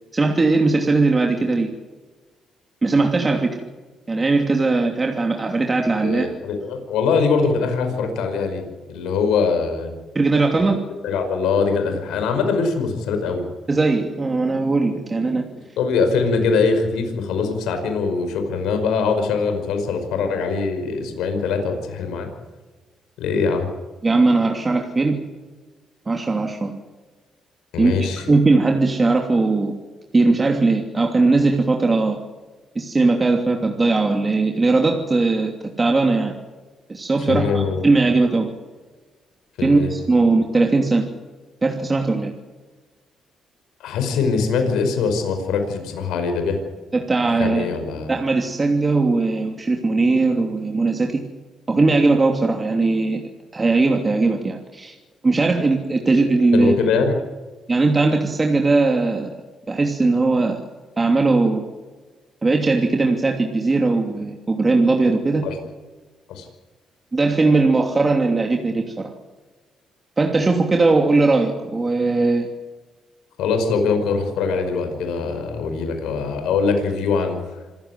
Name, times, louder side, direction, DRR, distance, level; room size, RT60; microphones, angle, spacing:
voice 1, 0.1-1.7 2.8-3.6 4.1-6.3 10.1-10.8 13.7-15.5 24.0-25.1 26.1-26.8 27.8-29.7 30.1-32.2 32.7-36.3 36.9-38.5 39.6-41.1 41.6-42.3 46.9-47.7 48.1-51.2 51.7-53.2 53.5-54.9 55.2-56.7 57.7-59.3 59.7-60.6 61.0-61.7 62.4-65.5 67.1-69.1 70.2-72.5, right 3 dB, 25° right, 2 dB, 2.9 m, -19 dB
voice 2, 6.0-8.6 8.9-9.9 11.0-13.5 15.8-22.3 23.2-23.7 27.7-28.2 37.3-37.8 39.6-39.9 43.8-46.6 47.4-48.1 56.5-57.2 65.4-65.6 66.3-66.5 73.4-77.4, left 5 dB, 90° left, 6 dB, 5.2 m, -22 dB
26.5 x 15.0 x 9.5 m, 1.3 s
cardioid pair, 90°, 0 cm